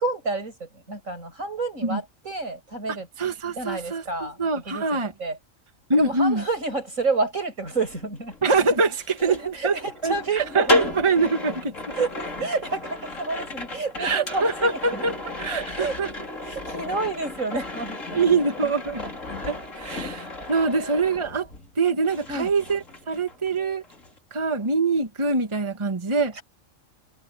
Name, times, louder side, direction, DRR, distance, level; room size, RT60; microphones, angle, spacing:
voice 1, 0.0-3.1 3.6-4.4 4.7-5.4 5.9-8.3 9.3-10.8 11.9-15.0 15.8-16.0 16.4-18.2 19.8-20.4 20.7-21.0 22.3-22.5, right 3 dB, 75° right, 7.6 m, -30 dB
voice 2, 2.9-5.1 5.9-6.4 8.4-9.8 10.0-11.9 14.0-15.1 15.4-16.1 18.1-19.0 19.5-21.5 21.8-23.8 24.3-26.3, right 3 dB, 25° right, 1.5 m, -24 dB
sound 1, 7.7-21.8 22.1-23.6 23.8-24.2, left 2 dB, 70° left, 4.3 m, -35 dB
omnidirectional pair, 1.4 m